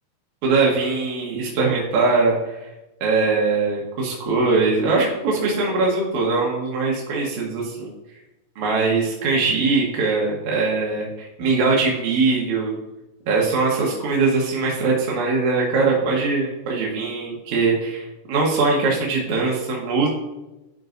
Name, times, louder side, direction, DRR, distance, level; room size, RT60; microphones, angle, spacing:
voice 1, 0.4-2.6 3.0-7.9 8.6-12.7 13.3-20.1, right 3 dB, 70° right, -2 dB, 1.8 m, -21 dB
10.5 x 5.4 x 2.5 m, 1.0 s
omnidirectional pair, 5.0 m